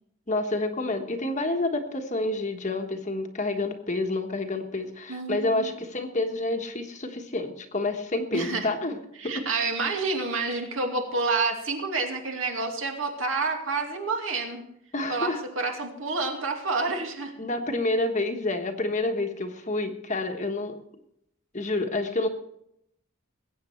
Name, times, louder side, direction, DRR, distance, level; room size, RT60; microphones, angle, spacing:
voice 1, 0.3-9.0 9.2-9.3 14.9-15.4 17.4-20.8 21.5-22.3, left 2 dB, 35° left, 5 dB, 1.3 m, -28 dB
voice 2, 5.1-5.7 8.3-8.7 9.2-14.6 15.1-17.3, right 3 dB, 65° right, 2 dB, 2.6 m, -29 dB
20.5 x 8.9 x 4.5 m, 0.76 s
head